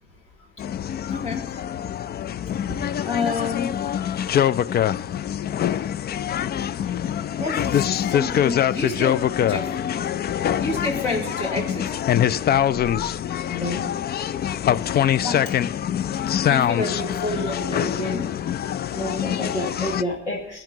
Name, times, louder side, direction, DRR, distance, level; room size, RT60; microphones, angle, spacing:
sound 1, 0.6-20.0, left 10 dB, 30° left, 0.4 m, -24 dB
voice 1, 1.1-1.5 2.6-3.8 7.4-9.7 10.6-11.9 15.2-15.5 16.4-18.3, left 3 dB, 60° left, -3 dB, 3.0 m, -29 dB
voice 2, 13.3-13.9 18.9-20.6, left 1 dB, 85° left, 0 dB, 0.9 m, -29 dB
21.0 x 10.0 x 2.8 m, 0.86 s
figure-of-eight pair, 40°, 34 cm